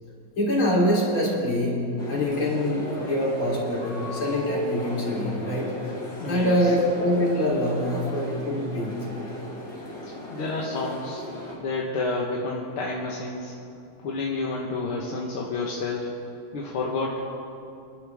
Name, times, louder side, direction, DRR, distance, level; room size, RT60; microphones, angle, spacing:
voice 1, 0.4-1.8 2.1-5.7 6.3-9.0, equal, 70° left, -5 dB, 4.5 m, -24 dB
sound 1, 2.0-11.6, left 1 dB, 30° left, 3.7 m, -36 dB
voice 2, 6.2-6.7 10.1-11.2 11.6-13.5 14.0-16.1 16.5-17.3, left 3 dB, 85° left, -3 dB, 2.3 m, -30 dB
27.0 x 12.0 x 3.6 m, 2.6 s
omnidirectional pair, 2.3 m